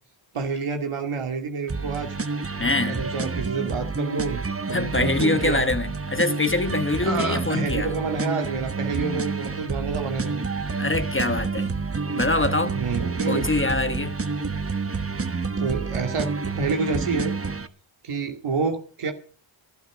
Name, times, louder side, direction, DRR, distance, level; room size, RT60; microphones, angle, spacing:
voice 1, 0.3-2.2 2.8-4.4 4.7-5.7 7.0-10.5 12.7-13.5 15.6-16.3 16.6-17.4 18.0-19.1, right 4 dB, 80° right, 2.3 m, -28 dB
sound 1, 1.7-17.7, right 4 dB, 25° right, 1.2 m, -29 dB
voice 2, 2.6-3.0 4.7-7.9 10.8-11.7 12.1-12.8 13.3-14.2, left 2 dB, 25° left, 1.1 m, -24 dB
18.0 x 12.0 x 5.0 m
cardioid pair, 75°, 50 cm